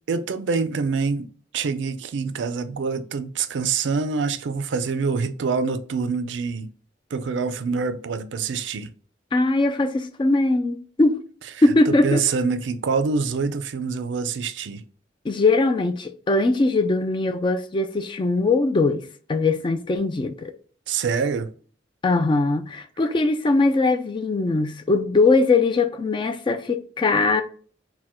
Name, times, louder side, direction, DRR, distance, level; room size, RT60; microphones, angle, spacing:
voice 1, 0.1-1.3 1.5-6.7 7.1-8.9 11.9-14.8 20.9-21.5, right 5 dB, 75° right, 0.4 m, -25 dB
voice 2, 9.3-11.2 11.6-12.2 15.3-20.5 22.0-27.4, left 3 dB, 25° left, 0.3 m, -21 dB
4.3 x 2.2 x 4.2 m
head